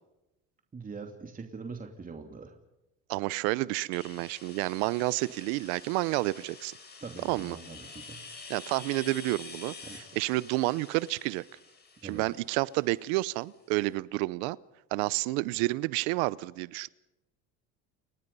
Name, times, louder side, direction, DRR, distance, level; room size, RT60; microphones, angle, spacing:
voice 1, 0.7-2.6 7.0-8.2 9.8-10.0 12.0-12.2, right 4 dB, 25° right, 3 dB, 2.8 m, -43 dB
voice 2, 3.1-6.7 7.2-7.6 8.5-11.4 12.0-14.6 14.9-16.9, right 21 dB, 80° right, 21 dB, 0.8 m, -30 dB
sound 1, 3.9-13.5, left 4 dB, 30° left, 7.1 m, -48 dB
29.5 x 23.5 x 5.5 m, 0.96 s
supercardioid pair, 90°, 33 cm